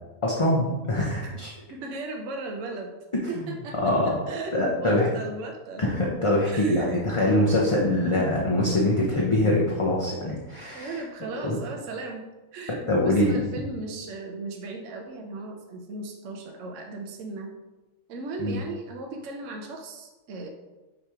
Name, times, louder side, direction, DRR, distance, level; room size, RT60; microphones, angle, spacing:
voice 1, 0.2-1.5 3.4-3.5 3.8-4.1 4.5-5.1 5.8-11.0 11.4-11.6 12.9-13.4 18.4-18.6, left 1 dB, 30° left, -4 dB, 0.6 m, -23 dB
voice 2, 1.7-2.9 3.3-5.9 6.4-7.0 10.7-17.5 18.1-20.5, right 3 dB, 65° right, 2 dB, 1.0 m, -37 dB
6.5 x 3.0 x 4.8 m, 1.1 s
omnidirectional pair, 1.4 m